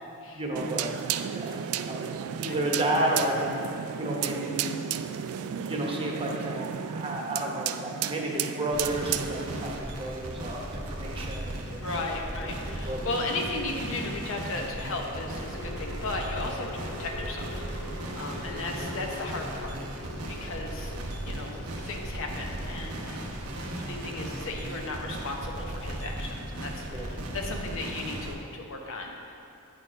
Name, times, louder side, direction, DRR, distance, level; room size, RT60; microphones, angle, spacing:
voice 1, 0.3-0.9 1.3-1.6 1.9-4.8 5.6-11.8 12.7-13.1 26.9-27.1, right 1 dB, 25° right, -2 dB, 1.0 m, -32 dB
sound 1, 0.5-9.7, right 9 dB, 70° right, 0.3 m, -33 dB
sound 2, 8.7-28.3, right 1 dB, 90° right, 0.9 m, -36 dB
voice 2, 11.8-17.9 18.2-19.8 20.3-20.9 21.2-23.4 23.6-29.4, left 2 dB, 65° left, 1 dB, 0.8 m, -36 dB
sound 3, 14.8-26.1, left 2 dB, 80° left, 1.6 m, -47 dB
9.1 x 4.5 x 5.0 m, 2.6 s
head